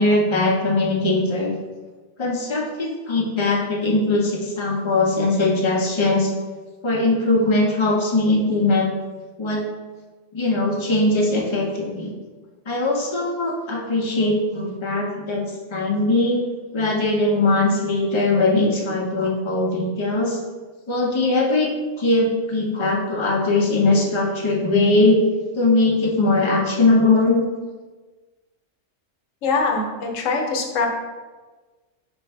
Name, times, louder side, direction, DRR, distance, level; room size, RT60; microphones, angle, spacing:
voice 1, 0.0-1.5 2.2-6.3 6.8-8.9 9.4-9.7 10.3-12.1 12.7-15.4 15.7-16.4 16.7-20.4 20.9-21.7 22.0-25.2 25.5-27.4, left 2 dB, 45° left, -1 dB, 0.4 m, -20 dB
voice 2, 29.4-30.9, left 4 dB, 75° left, 2 dB, 1.0 m, -23 dB
5.3 x 2.5 x 3.3 m, 1.3 s
omnidirectional pair, 1.4 m